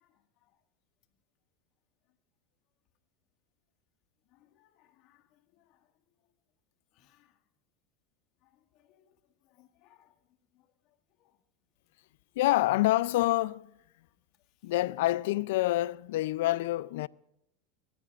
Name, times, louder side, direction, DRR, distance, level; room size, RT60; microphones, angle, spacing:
voice 1, 4.3-5.2 5.6-5.8 7.0-7.3 8.9-9.1 9.5-10.1, left 13 dB, 55° left, 1.8 m, -65 dB
voice 2, 12.4-13.7 14.6-17.1, left 16 dB, 75° left, 0.4 m, -27 dB
23.0 x 18.0 x 2.5 m
hypercardioid pair, 100°, 0 cm